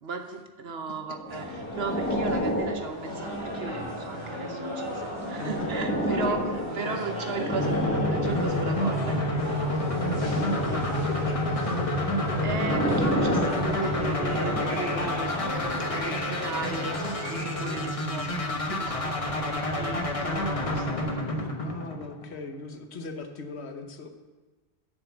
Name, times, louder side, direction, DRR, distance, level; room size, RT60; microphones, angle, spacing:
voice 1, 0.0-6.4 6.7-7.8 8.1-9.6 12.4-15.3 15.8-21.1, right 5 dB, 70° right, 5 dB, 1.1 m, -36 dB
sound 1, 1.1-4.2 4.8-9.1 9.8-10.9 11.8-15.1 15.8-16.0, equal, 15° left, 0.9 m, -31 dB
sound 2, 1.3-17.9, left 1 dB, 25° right, 3.2 m, -36 dB
voice 2, 5.4-5.7 6.1-7.0 10.2-12.1 20.6-24.1, left 4 dB, 90° left, 6 dB, 1.2 m, -39 dB
sound 3, 7.5-22.4, left 1 dB, 35° left, 1.1 m, -29 dB
7.3 x 6.7 x 7.1 m, 1.3 s
omnidirectional pair, 1.1 m